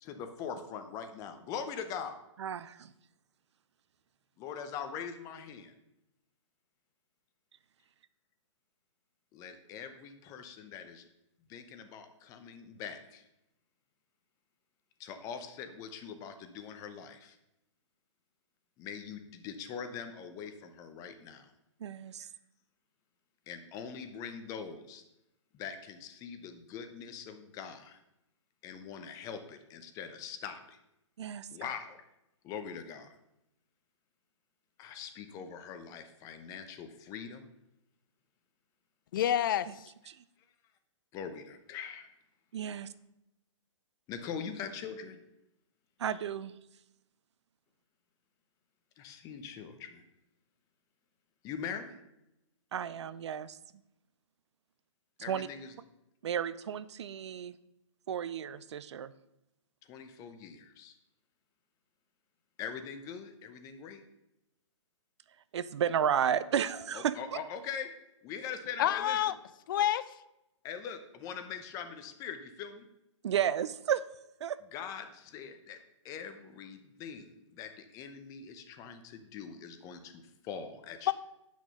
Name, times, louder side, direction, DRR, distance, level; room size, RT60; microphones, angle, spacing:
voice 1, 0.0-2.1 4.4-5.7 9.3-11.0 11.5-13.2 15.0-17.4 18.8-21.5 22.2-22.3 23.5-25.0 25.5-28.0 28.6-30.8 31.5-32.0 32.4-33.1 34.8-37.5 41.1-42.1 44.1-45.2 49.0-50.0 51.4-52.0 55.2-55.7 59.9-60.9 62.6-64.0 66.9-67.9 68.2-69.2 70.6-72.9 74.7-75.8 76.0-81.1, left 7 dB, 20° left, 0.9 m, -42 dB
voice 2, 2.4-2.8 21.8-22.3 31.2-31.5 40.1-40.2 42.5-42.9 46.0-46.5 52.7-53.6 55.3-55.5 56.2-57.6 58.1-59.1 65.5-67.1 73.2-74.0 74.4-74.6, right 9 dB, 60° right, 0.6 m, -32 dB
voice 3, 39.1-39.9 68.8-69.3 69.7-70.0 81.1-81.2, left 11 dB, 40° left, 0.5 m, -28 dB
8.5 x 6.2 x 5.5 m
hypercardioid pair, 155°, 16 cm